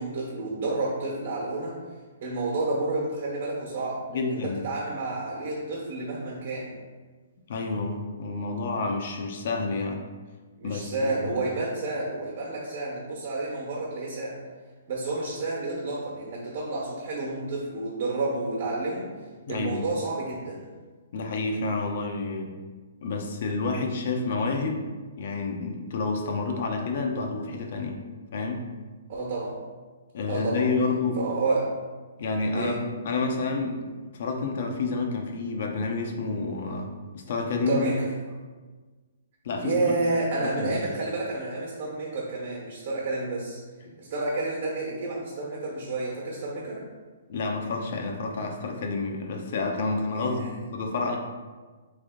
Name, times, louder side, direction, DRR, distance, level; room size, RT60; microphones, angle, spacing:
voice 1, 0.0-1.8 2.2-6.7 10.6-14.4 14.9-19.1 19.5-20.7 29.1-29.6 30.3-30.7 31.2-31.7 32.5-32.8 37.7-38.1 39.6-43.6 44.0-46.8 50.1-50.5, right 2 dB, 55° right, -3 dB, 1.2 m, -30 dB
voice 2, 4.1-4.6 7.5-10.0 10.6-11.4 19.5-19.8 21.1-22.5 23.0-24.9 25.2-28.0 28.3-28.6 30.1-31.2 32.2-32.7 33.0-33.8 34.1-37.8 39.4-40.0 40.4-40.8 43.9-44.0 47.3-51.2, left 3 dB, 55° left, 2 dB, 0.7 m, -29 dB
3.4 x 3.3 x 3.7 m, 1.4 s
hypercardioid pair, 150°, 0 cm